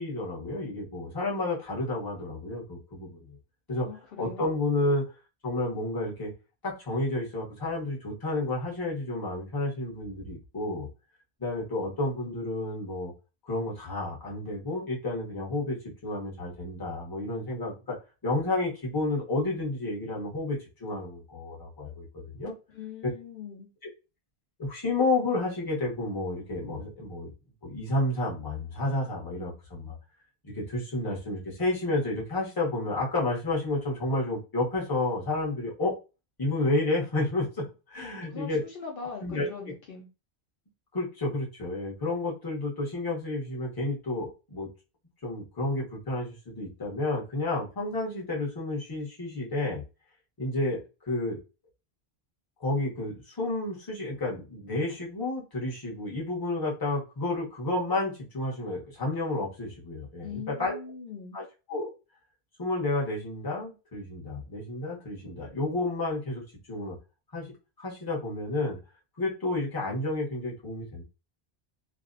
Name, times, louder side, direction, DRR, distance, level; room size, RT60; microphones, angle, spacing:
voice 1, 0.0-3.4 3.7-3.9 4.2-5.0 5.4-6.3 6.6-10.9 11.4-13.1 13.4-18.0 18.2-22.5 24.6-27.3 27.6-29.9 30.4-36.0 36.4-38.6 39.2-39.5 40.9-44.7 45.2-49.8 50.4-51.4 52.6-60.8 61.3-61.4 61.7-61.9 62.6-66.4 66.7-66.9 67.3-67.5 67.8-68.8 69.2-71.0, left 2 dB, 25° left, -3 dB, 0.8 m, -31 dB
voice 2, 3.8-4.6 22.7-23.7 38.3-40.1 60.2-61.4, left 6 dB, 65° left, -1 dB, 0.7 m, -41 dB
2.5 x 2.0 x 2.4 m, 0.30 s
omnidirectional pair, 1.1 m